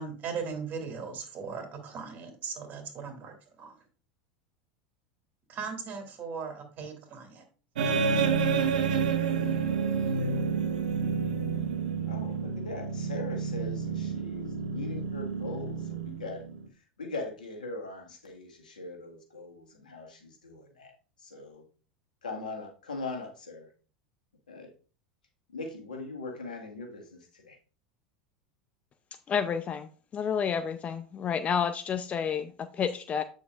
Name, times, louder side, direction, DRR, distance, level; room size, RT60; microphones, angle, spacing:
voice 1, 0.0-3.7 5.5-7.4, right 5 dB, 45° right, 2.7 m, -38 dB
sound 1, 7.8-16.7, right 5 dB, 80° right, 1.0 m, -29 dB
voice 2, 12.1-16.5 17.0-20.9 21.2-21.6 22.2-23.7 24.5-24.7 25.5-27.6, left 3 dB, 90° left, 1.8 m, -40 dB
voice 3, 29.3-33.2, left 7 dB, 30° left, 0.5 m, -30 dB
8.6 x 6.4 x 2.5 m
hypercardioid pair, 90°, 4 cm